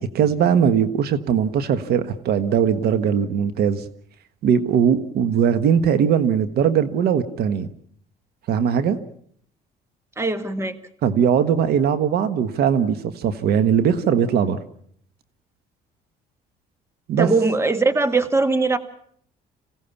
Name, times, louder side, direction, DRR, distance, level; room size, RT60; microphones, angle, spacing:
voice 1, 0.0-3.8 4.4-7.7 8.5-9.0 11.0-14.6 17.1-17.3, right 8 dB, 70° right, 12 dB, 1.4 m, -20 dB
voice 2, 10.2-10.8 17.2-18.8, right 3 dB, 15° right, 11 dB, 1.7 m, -20 dB
26.0 x 16.5 x 7.1 m, 0.65 s
cardioid pair, 110°, 17 cm